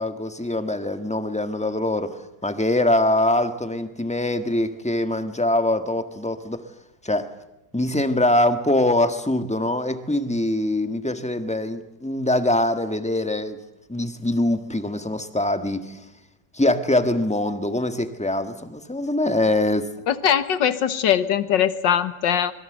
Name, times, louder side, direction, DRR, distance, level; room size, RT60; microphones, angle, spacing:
voice 1, 0.0-6.6 7.0-7.3 7.7-13.6 13.9-16.0 16.5-19.9, left 1 dB, 5° left, 8 dB, 1.3 m, -23 dB
voice 2, 20.1-22.5, left 9 dB, 80° left, 13 dB, 1.9 m, -21 dB
26.0 x 22.0 x 7.9 m, 0.90 s
omnidirectional pair, 1.9 m